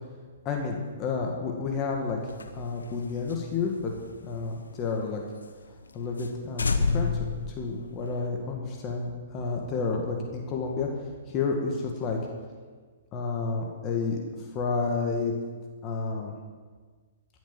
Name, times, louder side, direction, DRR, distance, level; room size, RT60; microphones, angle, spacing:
voice 1, 0.4-2.2 2.5-3.9 4.2-5.2 5.9-12.2 13.1-15.3 15.8-16.3, left 4 dB, 30° left, 1 dB, 2.0 m, -30 dB
sound 1, 2.2-5.1 5.4-5.5 5.8-5.9 6.2-6.3 6.6-8.3, left 4 dB, 85° left, 1.0 m, -30 dB
15.0 x 7.3 x 7.3 m, 1.5 s
hypercardioid pair, 125°, 0 cm